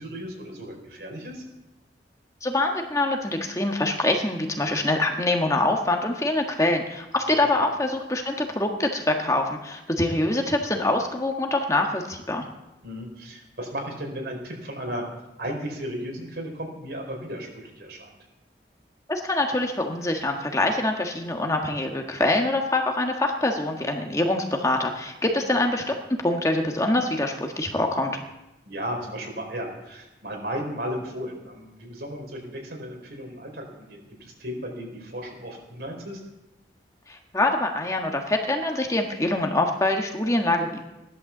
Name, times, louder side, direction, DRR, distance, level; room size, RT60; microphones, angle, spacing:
voice 1, 0.0-1.4 7.6-7.7 12.8-15.0 15.4-18.1 25.3-25.4 28.6-36.2, equal, 70° right, 1 dB, 4.7 m, -35 dB
voice 2, 2.4-12.5 19.1-28.2 37.1-40.8, left 2 dB, 20° left, 2 dB, 1.4 m, -25 dB
17.0 x 11.5 x 7.2 m, 0.96 s
head